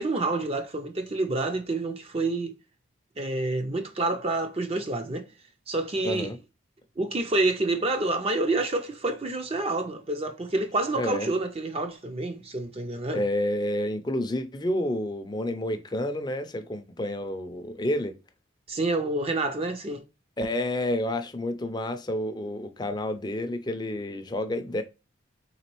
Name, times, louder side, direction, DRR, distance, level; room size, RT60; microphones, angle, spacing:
voice 1, 0.0-2.5 3.2-5.3 5.7-6.3 7.0-13.2 18.7-20.0, right 2 dB, 30° right, 0.5 m, -28 dB
voice 2, 6.0-6.4 10.9-11.3 13.1-18.1 20.4-24.8, left 1 dB, 20° left, 0.5 m, -29 dB
4.1 x 3.6 x 3.0 m
head